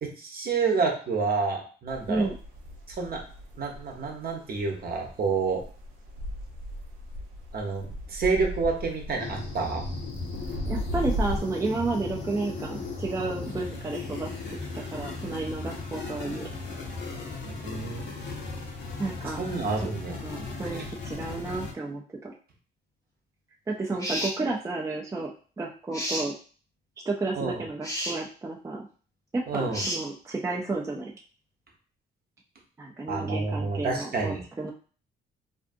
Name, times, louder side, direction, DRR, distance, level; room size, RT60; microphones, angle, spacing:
voice 1, 0.0-2.3 3.0-3.2 3.6-5.6 7.5-9.8 17.4-18.1 19.4-20.2 27.4-27.6 29.5-29.8 33.1-34.4, right 4 dB, 50° right, 1 dB, 0.8 m, -29 dB
sound 1, 1.9-11.4, equal, 80° right, 0.6 m, -36 dB
sound 2, 9.2-21.7, left 3 dB, 65° left, 0.8 m, -37 dB
voice 2, 10.7-16.5 19.0-19.4 19.8-19.9 20.2-22.3 23.7-25.3 25.6-26.3 27.0-28.9 29.3-31.1 32.8-34.7, right 3 dB, 15° right, -1 dB, 0.4 m, -32 dB
sound 3, 24.0-24.4 25.9-26.3 27.8-28.2 29.7-30.0, equal, 15° left, 0.9 m, -31 dB
2.5 x 2.4 x 2.5 m, 0.40 s
cardioid pair, 90°, 20 cm